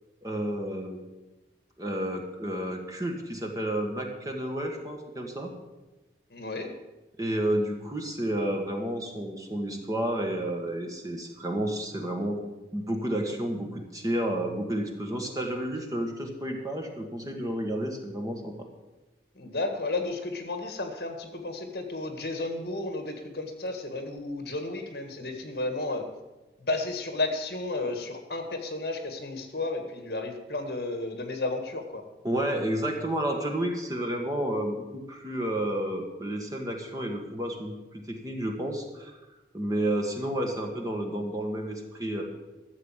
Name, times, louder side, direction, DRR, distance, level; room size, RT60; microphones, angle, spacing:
voice 1, 0.2-1.0 1.8-5.5 7.2-12.4 12.7-18.5 32.2-37.7 38.1-39.2 39.5-42.2, right 1 dB, 20° right, 2 dB, 1.5 m, -31 dB
voice 2, 6.3-6.7 19.3-26.0 26.6-32.0, left 2 dB, 60° left, 6 dB, 1.7 m, -33 dB
13.5 x 7.3 x 7.4 m, 1.1 s
head